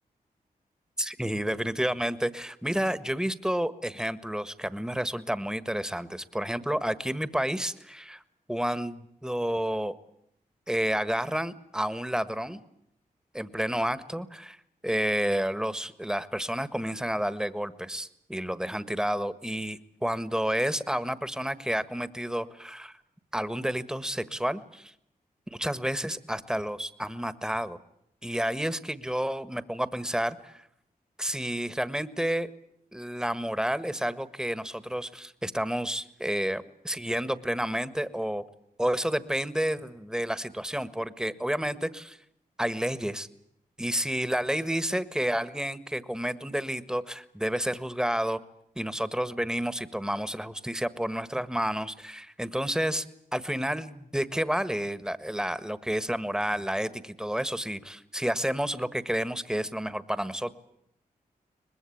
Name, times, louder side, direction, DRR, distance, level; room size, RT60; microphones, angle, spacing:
voice 1, 1.0-8.2 8.5-9.9 10.7-12.6 13.3-14.6 14.8-23.0 23.3-24.9 25.6-27.8 28.2-30.6 31.2-32.5 32.9-38.4 38.8-42.2 42.6-43.3 43.8-48.4 48.7-53.0 53.3-60.5, equal, 5° right, 14 dB, 1.5 m, -30 dB
23.5 x 20.5 x 8.7 m, 0.76 s
cardioid pair, 50°, 16 cm